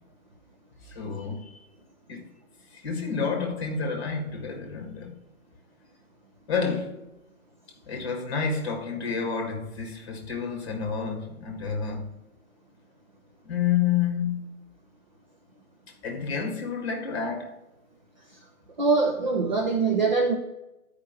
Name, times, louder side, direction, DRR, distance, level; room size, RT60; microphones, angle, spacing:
voice 1, 0.9-1.6 2.1-2.3 2.8-5.2 6.5-7.0 7.9-12.1 13.4-14.4 16.0-17.6, left 6 dB, 20° left, 1.3 m, -29 dB
voice 2, 18.8-20.4, right 4 dB, 30° right, 0.7 m, -23 dB
10.5 x 5.0 x 4.4 m
figure-of-eight pair, 155°, 44 cm